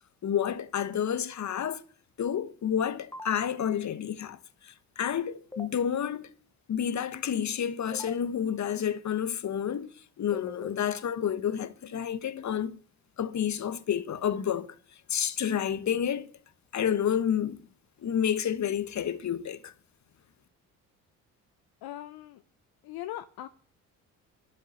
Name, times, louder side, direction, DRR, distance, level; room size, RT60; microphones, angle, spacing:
voice 1, 0.2-1.8 2.2-6.3 6.7-12.8 13.2-14.7 15.1-16.3 16.7-17.6 18.0-19.7, left 9 dB, 40° left, 1.3 m, -30 dB
sound 1, 3.1-3.3 5.5-5.7 7.9-8.1 10.3-10.7, left 1 dB, 5° left, 1.2 m, -41 dB
voice 2, 21.8-22.4 22.8-23.5, left 14 dB, 60° left, 0.9 m, -40 dB
12.5 x 7.1 x 9.9 m
hypercardioid pair, 55°, 41 cm